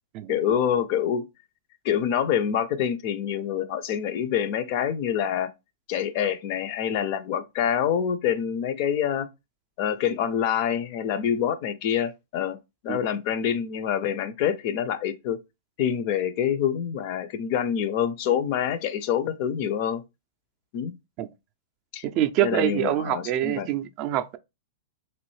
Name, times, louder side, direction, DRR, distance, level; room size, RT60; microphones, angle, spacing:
voice 1, 0.3-1.2 1.8-5.5 5.9-9.3 9.8-12.6 12.8-15.4 15.8-20.0 20.7-20.9 21.9-22.1 22.4-23.7, left 9 dB, 50° left, 0.4 m, -26 dB
voice 2, 22.0-24.4, right 12 dB, 40° right, 0.3 m, -25 dB
3.0 x 2.5 x 3.1 m
hypercardioid pair, 125°, 0 cm